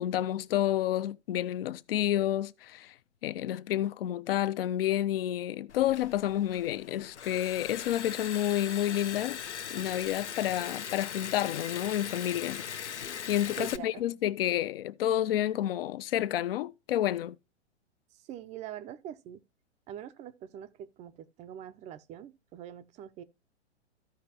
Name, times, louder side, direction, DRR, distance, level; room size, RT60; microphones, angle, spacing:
voice 1, 0.0-2.9 3.2-9.4 9.7-17.4, left 12 dB, 55° left, 0.7 m, -30 dB
Liquid, 5.7-13.8, left 8 dB, 80° left, 0.9 m, -40 dB
voice 2, 13.6-14.0 18.1-19.4 19.9-23.2, right 10 dB, 20° right, 0.5 m, -44 dB
14.5 x 5.1 x 2.8 m
hypercardioid pair, 115°, 34 cm